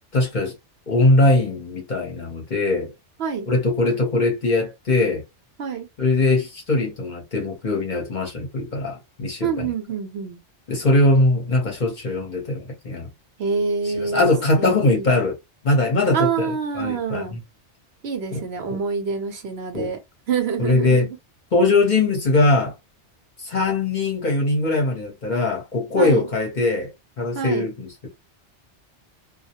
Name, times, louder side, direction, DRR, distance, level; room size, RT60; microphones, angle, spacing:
voice 1, 0.1-0.6 0.9-2.9 3.5-5.2 6.0-9.7 10.7-13.1 13.9-15.4 15.6-16.5 16.7-17.4 18.3-18.4 18.7-18.8 19.7-19.9 20.6-21.1 21.5-22.7 23.4-26.9 27.2-28.1, left 2 dB, 45° left, 0.8 m, -21 dB
voice 2, 9.4-10.4 13.4-15.1 16.1-17.4 18.0-20.0 20.3-21.2 26.0-26.2 27.3-27.7, right 5 dB, 65° right, 0.9 m, -26 dB
2.3 x 2.0 x 2.7 m
omnidirectional pair, 1.2 m